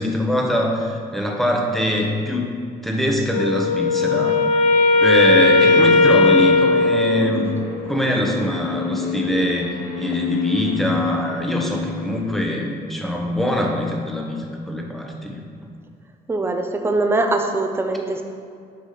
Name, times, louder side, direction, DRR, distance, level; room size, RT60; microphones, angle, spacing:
voice 1, 0.0-2.6 2.8-4.6 5.0-7.5 7.9-15.4, equal, ahead, 0 dB, 1.1 m, -23 dB
Wind instrument woodwind instrument, 3.3-7.7, left 3 dB, 50° left, 0.6 m, -17 dB
sound 1, 5.3-12.4, left 6 dB, 75° left, 1.7 m, -28 dB
voice 2, 16.3-18.2, right 2 dB, 15° right, 4 dB, 0.7 m, -22 dB
8.4 x 5.1 x 4.0 m, 2.2 s
cardioid pair, 110°, 17 cm